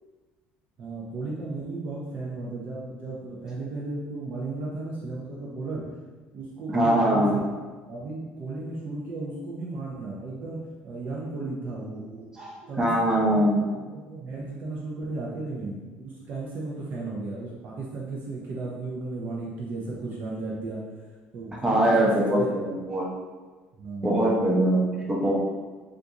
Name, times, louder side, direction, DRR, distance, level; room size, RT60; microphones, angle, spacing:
voice 1, 0.8-6.0 6.3-7.4 7.9-12.4 12.7-20.8 21.3-22.5 23.8-24.1, right 3 dB, 45° right, -4 dB, 0.6 m, -35 dB
voice 2, 6.7-7.4 12.4-13.7 21.6-23.1 24.0-25.3, right 1 dB, 15° right, -3 dB, 0.8 m, -22 dB
3.6 x 2.5 x 2.8 m, 1.3 s
cardioid pair, 115°, 4 cm